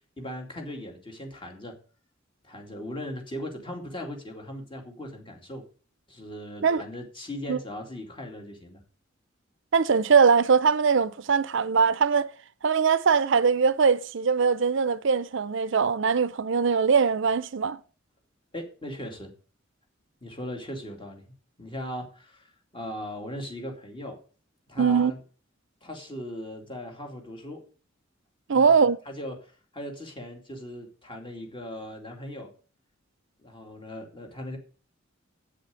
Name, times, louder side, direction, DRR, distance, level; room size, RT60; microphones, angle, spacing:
voice 1, 0.2-1.8 2.4-5.6 6.1-8.8 18.5-19.3 20.2-21.2 21.6-24.2 24.7-25.2 25.8-27.6 28.5-28.8 29.1-32.5 33.4-34.6, equal, 25° left, 2.5 m, -38 dB
voice 2, 9.7-12.3 12.6-17.8 24.8-25.1 28.5-29.0, right 5 dB, 65° right, 0.6 m, -21 dB
8.3 x 7.6 x 8.1 m
head